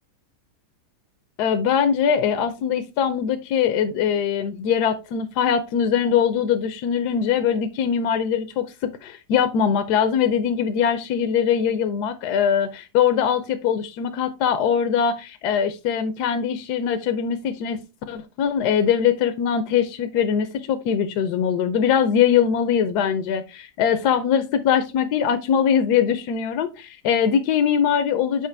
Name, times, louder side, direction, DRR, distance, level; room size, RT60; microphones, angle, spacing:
voice 1, 1.4-17.8 18.1-28.5, left 8 dB, 75° left, 1.1 m, -22 dB
6.5 x 5.0 x 3.3 m
omnidirectional pair, 1.8 m